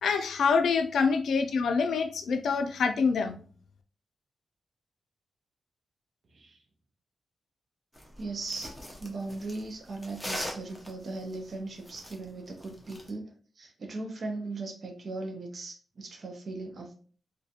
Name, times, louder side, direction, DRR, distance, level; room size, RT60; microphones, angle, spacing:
voice 1, 0.0-3.4, left 5 dB, 85° left, 6 dB, 0.3 m, -26 dB
sound 1, 7.9-13.1, equal, 5° left, 0.5 m, -41 dB
voice 2, 8.2-16.9, right 3 dB, 45° right, 2 dB, 0.4 m, -38 dB
2.4 x 2.1 x 2.7 m, 0.42 s
wide cardioid pair, 140°, 0 cm